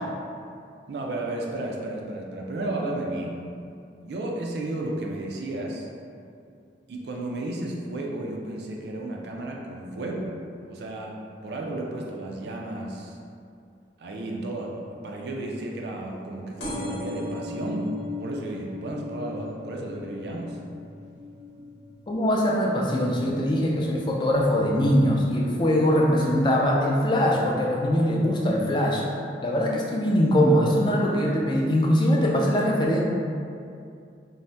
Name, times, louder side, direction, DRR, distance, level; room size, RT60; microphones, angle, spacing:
voice 1, 0.9-3.3 4.0-5.9 6.9-10.3 10.7-11.2 11.4-13.2 14.0-17.9 18.2-20.6, right 2 dB, 65° right, 0 dB, 0.4 m, -33 dB
sound 1, 16.6-23.8 24.3-24.8 25.6-25.7 26.0-26.1 26.3-26.4, left 2 dB, 90° left, 0.9 m, -37 dB
voice 2, 22.1-29.0 29.4-33.0, equal, 25° left, -2 dB, 0.3 m, -22 dB
2.7 x 2.1 x 3.3 m, 2.5 s
head